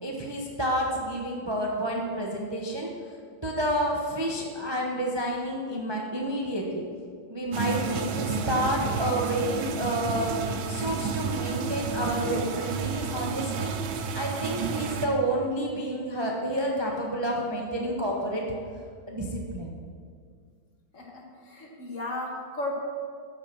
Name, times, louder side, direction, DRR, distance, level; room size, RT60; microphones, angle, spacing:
voice 1, 0.0-2.9 3.4-6.8 7.3-10.3 10.7-13.7 14.1-18.4 19.1-19.7, right 1 dB, 20° right, -1 dB, 0.6 m, -29 dB
sound 1, 7.5-15.1, right 5 dB, 90° right, 1.5 m, -31 dB
voice 2, 20.9-22.8, left 2 dB, 40° left, -1 dB, 1.9 m, -35 dB
12.0 x 6.5 x 6.1 m, 2.1 s
omnidirectional pair, 2.1 m